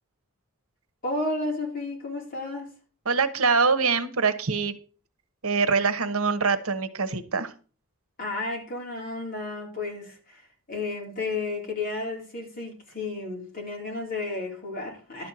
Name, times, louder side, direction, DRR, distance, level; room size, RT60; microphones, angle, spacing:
voice 1, 1.0-2.7 8.2-15.3, left 2 dB, 40° left, 3.7 m, -32 dB
voice 2, 3.1-4.8 5.4-7.5, right 4 dB, 75° right, 1.1 m, -24 dB
12.0 x 4.4 x 7.8 m
head